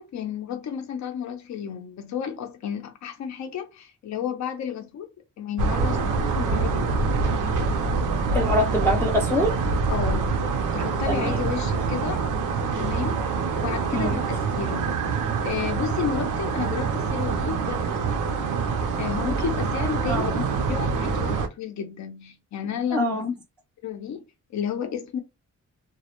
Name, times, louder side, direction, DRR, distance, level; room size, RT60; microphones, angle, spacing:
voice 1, 0.0-5.1 5.4-7.1 9.9-10.4 10.7-12.2 12.8-13.2 13.5-18.5 19.0-23.2 23.8-24.2 24.5-25.2, left 8 dB, 65° left, 0.5 m, -32 dB
sound 1, 5.6-21.5, right 4 dB, 80° right, 0.5 m, -25 dB
voice 2, 8.3-9.6 11.1-11.4 13.9-14.2 20.1-20.4 22.9-23.3, left 1 dB, 5° left, 0.4 m, -24 dB
2.1 x 2.1 x 2.8 m
wide cardioid pair, 135°, 31 cm